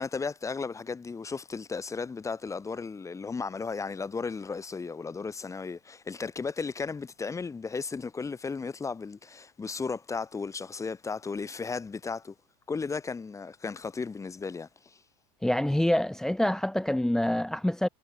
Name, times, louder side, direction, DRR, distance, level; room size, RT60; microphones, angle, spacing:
voice 1, 0.0-12.3 12.7-15.0, left 4 dB, 20° left, 3.7 m, -35 dB
voice 2, 15.4-17.9, left 1 dB, 5° left, 0.7 m, -26 dB
hypercardioid pair, 100°, 16 cm